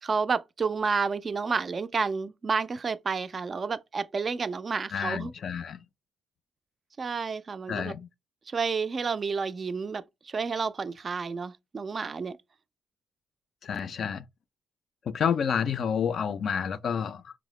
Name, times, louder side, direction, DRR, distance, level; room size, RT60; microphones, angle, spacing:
voice 1, 0.0-5.3 7.0-7.9 8.5-12.4, right 5 dB, 40° right, 0.3 m, -30 dB
voice 2, 4.9-5.8 7.7-8.1 13.6-14.2 15.1-17.3, left 7 dB, 55° left, 0.3 m, -29 dB
4.7 x 2.0 x 3.0 m
cardioid pair, 90°, 0 cm